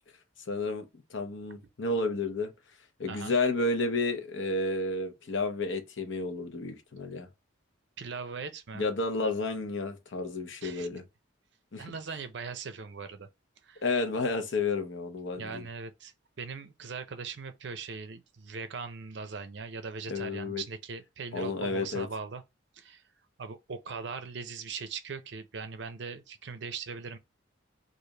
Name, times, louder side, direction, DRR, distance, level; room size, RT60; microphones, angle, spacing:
voice 1, 0.5-2.5 3.0-7.3 8.7-11.0 11.7-11.9 13.8-15.7 20.1-20.6 21.3-22.1, left 3 dB, 65° left, 0.8 m, -31 dB
voice 2, 3.1-3.4 8.0-8.8 10.6-10.9 11.8-13.3 13.6-13.8 15.4-16.1 16.4-22.4 22.7-23.0 23.4-27.2, right 5 dB, 55° right, 0.5 m, -40 dB
3.2 x 2.5 x 3.7 m
head